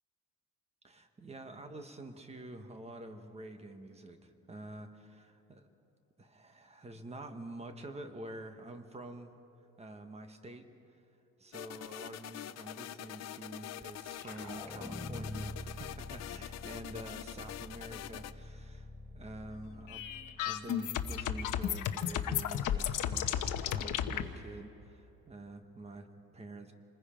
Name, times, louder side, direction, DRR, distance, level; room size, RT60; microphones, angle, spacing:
voice 1, 0.8-5.7 6.2-9.3 9.8-10.7 11.4-18.9 19.1-20.1 20.4-26.7, right 2 dB, 20° right, 7 dB, 1.2 m, -47 dB
sound 1, 11.5-18.3, left 12 dB, 50° left, 0.6 m, -45 dB
sound 2, 13.8-21.1, left 2 dB, 5° left, 4.8 m, -47 dB
sound 3, 19.9-24.2, left 10 dB, 65° left, 1.0 m, -33 dB
27.5 x 20.5 x 5.1 m, 3.0 s
cardioid pair, 170°, 33 cm